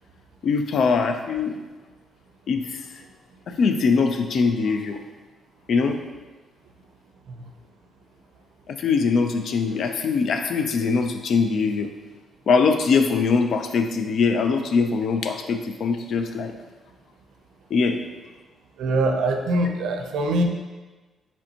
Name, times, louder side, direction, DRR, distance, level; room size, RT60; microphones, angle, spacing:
voice 1, 0.4-1.6 2.5-2.8 3.5-5.0 5.7-6.0 8.7-11.9 12.5-16.5 17.7-18.0, left 5 dB, 55° left, 6 dB, 0.4 m, -22 dB
voice 2, 18.8-20.4, right 1 dB, 80° right, 4 dB, 0.5 m, -23 dB
5.1 x 3.4 x 2.8 m, 1.3 s
cardioid pair, 115°, 0 cm